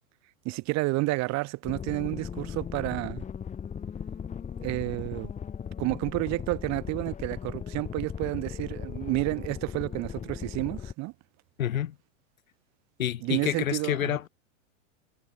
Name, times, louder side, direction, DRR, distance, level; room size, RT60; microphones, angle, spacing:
voice 1, 0.5-3.2 4.6-5.3 5.8-11.1 13.2-14.2, right 22 dB, 40° right, 2.0 m, -30 dB
sound 1, 1.6-10.9, left 7 dB, 20° left, 1.8 m, -37 dB
voice 2, 11.6-11.9 13.0-14.3, left 11 dB, 85° left, 2.3 m, -28 dB
hypercardioid pair, 120°, 40 cm